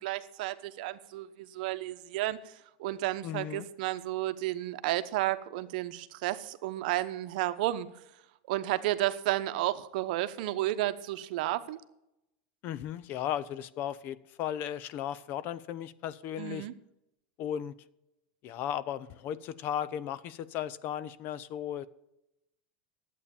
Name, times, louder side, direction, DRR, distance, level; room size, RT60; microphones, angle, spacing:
voice 1, 0.0-2.4 2.8-7.9 8.5-11.8 16.4-16.7, right 15 dB, 65° right, 12 dB, 0.9 m, -32 dB
voice 2, 3.2-3.7 12.6-16.7 17.4-17.8 18.4-21.9, left 10 dB, 45° left, 18 dB, 0.6 m, -36 dB
11.5 x 8.5 x 7.0 m, 0.86 s
supercardioid pair, 145°, 5 cm